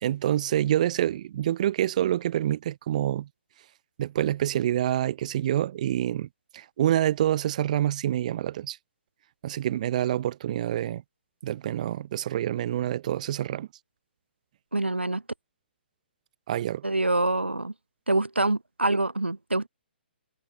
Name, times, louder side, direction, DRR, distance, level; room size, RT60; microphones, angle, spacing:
voice 1, 0.0-3.3 4.0-6.3 6.5-8.8 9.4-11.0 11.4-13.7 16.5-16.8, right 12 dB, 40° right, 0.8 m, -27 dB
voice 2, 14.7-15.2 16.8-17.7 18.1-19.7, right 2 dB, 85° right, 0.9 m, -25 dB
figure-of-eight pair, 130°, 6 cm